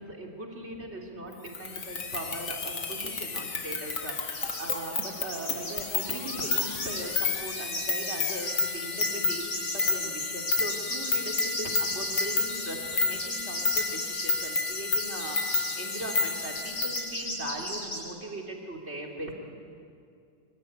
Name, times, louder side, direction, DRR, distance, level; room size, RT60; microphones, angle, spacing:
voice 1, 0.0-19.3, right 1 dB, 35° right, 0 dB, 3.8 m, -39 dB
sound 1, 1.5-17.1, left 4 dB, 45° left, 2.0 m, -31 dB
sound 2, 4.3-4.8 5.0-18.0, left 1 dB, 65° left, 6.9 m, -36 dB
25.0 x 25.0 x 9.6 m, 2.4 s
omnidirectional pair, 2.0 m